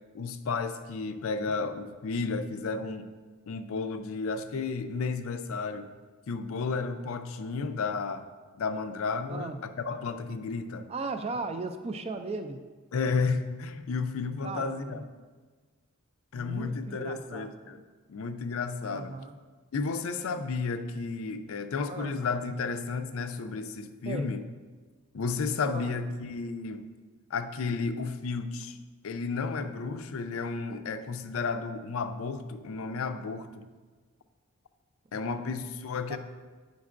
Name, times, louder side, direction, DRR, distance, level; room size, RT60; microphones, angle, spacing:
voice 1, 0.1-3.1 3.5-5.9 6.3-8.3 8.5-10.9 12.9-15.0 16.3-17.8 18.1-19.1 19.7-24.4 25.1-26.8 27.3-28.8 29.0-33.7 35.1-36.2, left 4 dB, 70° left, 9 dB, 0.4 m, -32 dB
voice 2, 9.3-9.6 10.9-12.6 14.4-15.1 16.3-17.5 18.9-19.4 21.9-22.2 24.0-24.3 25.7-26.0 35.1-35.5 36.1-36.2, right 3 dB, 25° right, 8 dB, 0.3 m, -37 dB
9.2 x 5.2 x 2.5 m, 1.4 s
head